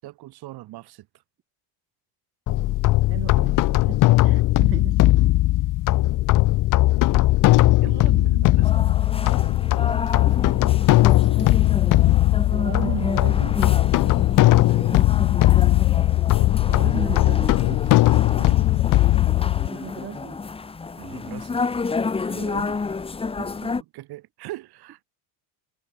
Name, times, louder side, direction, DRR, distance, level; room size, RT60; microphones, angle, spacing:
voice 1, 0.0-1.1 4.2-4.5 7.8-9.0 18.3-18.7 21.0-21.6 22.2-22.7 23.8-25.0, right 17 dB, 70° right, 5.5 m, -40 dB
sound 1, 2.5-19.7, left 17 dB, 50° left, 0.7 m, -18 dB
voice 2, 3.1-3.6 3.8-5.0 12.5-13.6 16.6-17.8 19.6-20.4 23.4-23.7, right 10 dB, 35° right, 0.9 m, -35 dB
sound 2, 8.6-23.8, left 4 dB, 15° left, 0.9 m, -30 dB
cardioid pair, 130°, 40 cm